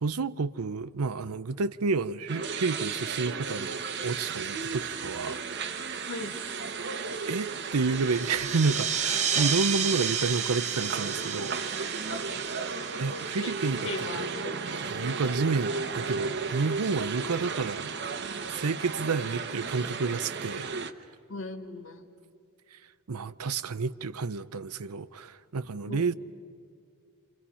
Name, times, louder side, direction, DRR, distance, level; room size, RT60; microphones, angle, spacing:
voice 1, 0.0-5.4 7.3-11.6 13.0-14.2 14.7-17.9 18.5-20.7 23.1-26.1, right 4 dB, 85° right, 0.7 m, -30 dB
sound 1, 2.3-20.9, right 5 dB, 50° right, 1.0 m, -34 dB
voice 2, 6.1-6.4 13.4-13.5 13.8-14.5 21.3-22.0 25.9-26.1, left 2 dB, 60° left, 2.2 m, -37 dB
sound 2, 7.9-14.0, right 7 dB, 30° right, 1.0 m, -32 dB
28.5 x 27.0 x 5.7 m
head